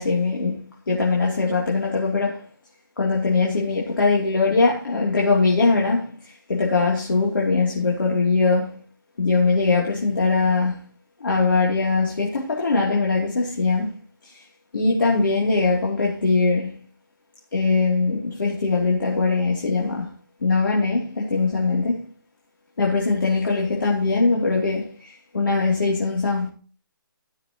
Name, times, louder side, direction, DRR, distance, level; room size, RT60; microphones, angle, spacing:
voice 1, 0.0-2.5 3.0-8.8 9.2-10.8 11.2-13.9 14.2-14.5 14.7-16.8 17.5-20.1 20.4-22.1 22.8-26.5, left 3 dB, 65° left, 2.9 m, -21 dB
17.0 x 6.6 x 3.0 m
hypercardioid pair, 180°, 12 cm